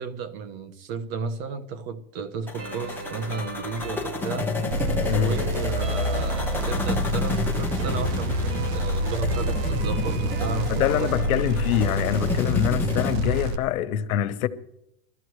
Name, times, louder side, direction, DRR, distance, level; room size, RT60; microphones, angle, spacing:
voice 1, 0.0-4.5 5.0-11.3 12.6-13.0, right 5 dB, 45° right, 1.5 m, -33 dB
sound 1, 2.5-13.1, left 4 dB, 5° left, 1.3 m, -31 dB
sound 2, 2.6-13.6, equal, 30° right, 1.5 m, -37 dB
sound 3, 4.7-13.6, equal, 70° right, 1.4 m, -27 dB
voice 2, 5.1-5.4 10.7-14.5, left 10 dB, 75° left, 1.1 m, -24 dB
22.5 x 14.0 x 3.2 m
supercardioid pair, 145°, 42 cm